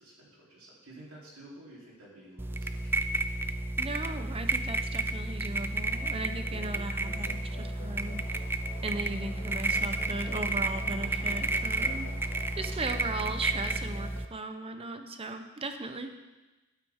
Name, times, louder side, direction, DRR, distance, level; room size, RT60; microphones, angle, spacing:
voice 1, 0.0-3.1 6.4-6.5, right 1 dB, 80° right, -5 dB, 3.4 m, -51 dB
sound 1, 1.1-1.4 1.8-13.5, left 2 dB, 30° left, 2.1 m, -56 dB
sound 2, 2.4-14.3, right 2 dB, 10° right, 0.3 m, -32 dB
voice 2, 3.8-8.4 8.8-16.1, right 2 dB, 25° right, 7 dB, 0.7 m, -37 dB
sound 3, 5.9-14.2, left 3 dB, 50° left, 1.7 m, -51 dB
12.0 x 8.8 x 3.6 m, 1.1 s
head